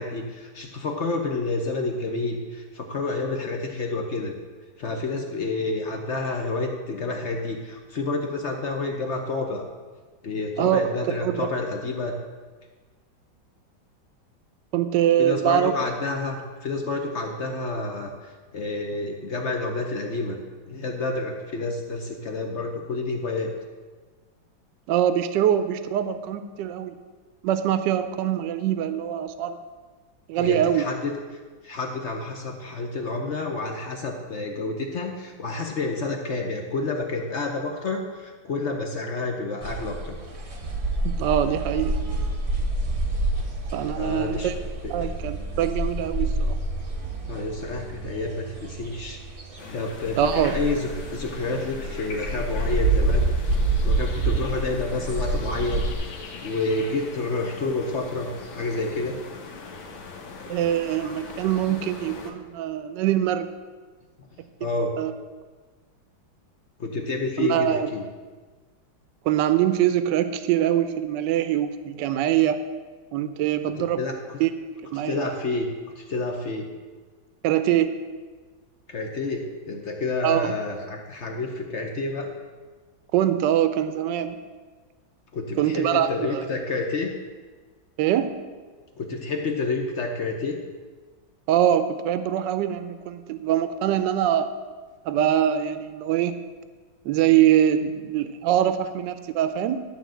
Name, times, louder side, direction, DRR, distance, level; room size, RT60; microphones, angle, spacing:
voice 1, 0.0-4.3 4.8-9.6 10.2-12.2 15.2-20.4 20.7-23.5 30.4-31.1 31.6-40.2 44.0-44.5 44.8-45.1 47.3-49.2 49.7-53.2 53.8-59.2 64.6-64.9 66.8-68.0 74.0-74.4 75.0-75.7 76.0-76.7 78.9-82.3 85.3-87.1 89.0-90.6, left 3 dB, 55° left, 2 dB, 0.8 m, -29 dB
voice 2, 14.7-15.7 24.9-27.0 27.4-29.6 30.3-30.8 41.0-41.9 43.7-44.5 44.9-46.6 50.2-50.5 60.5-63.5 65.0-65.1 67.4-67.9 69.2-72.6 73.1-74.0 74.4-74.5 74.9-75.2 77.4-78.0 80.2-80.5 83.1-84.4 85.6-86.4 88.0-88.4 91.5-94.5 95.0-96.4 97.0-99.8, right 11 dB, 70° right, 11 dB, 1.2 m, -23 dB
sound 1, 39.6-55.9, right 2 dB, 30° right, 0.6 m, -28 dB
sound 2, 49.6-62.3, left 4 dB, 80° left, 1.8 m, -41 dB
11.5 x 3.9 x 7.6 m, 1.4 s
omnidirectional pair, 2.1 m